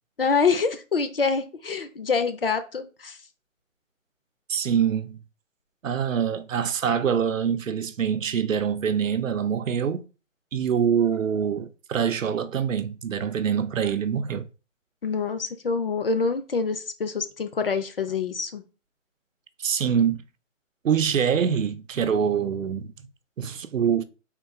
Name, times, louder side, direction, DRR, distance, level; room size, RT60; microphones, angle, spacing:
voice 1, 0.2-3.2 15.0-18.6, left 5 dB, 45° left, 0.6 m, -26 dB
voice 2, 4.5-5.2 5.8-10.0 10.5-14.5 19.6-20.2 20.8-22.9 23.4-24.0, right 7 dB, 75° right, 0.6 m, -25 dB
3.8 x 2.4 x 4.6 m
hypercardioid pair, 165°, 39 cm